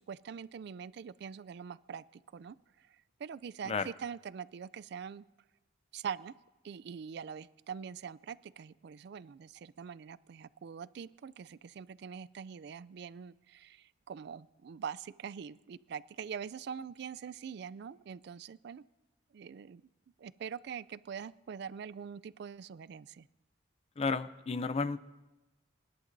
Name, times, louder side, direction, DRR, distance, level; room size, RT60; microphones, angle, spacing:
voice 1, 0.0-5.3 5.9-6.3 6.6-18.8 19.3-19.8 20.2-23.3, right 7 dB, 55° right, 18 dB, 0.3 m, -44 dB
voice 2, 24.0-25.0, left 4 dB, 30° left, 14 dB, 0.4 m, -32 dB
27.0 x 11.5 x 2.6 m, 1.1 s
head